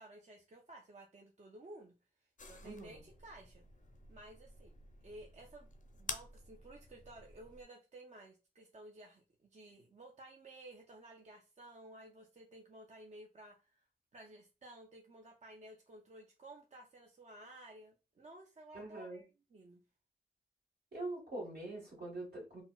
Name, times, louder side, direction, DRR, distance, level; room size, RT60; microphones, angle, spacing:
voice 1, 0.0-1.9 2.5-3.6 4.1-4.8 5.0-5.7 6.0-13.8 14.1-19.3 19.5-19.8, right 1 dB, 45° right, 1 dB, 0.4 m, -55 dB
sound 1, 2.4-7.6, left 3 dB, 50° left, 0.5 m, -50 dB
voice 2, 2.6-3.0 18.7-19.2 20.9-22.6, right 2 dB, 70° right, -3 dB, 1.5 m, -44 dB
3.9 x 2.0 x 2.2 m, 0.30 s
wide cardioid pair, 85°, 17 cm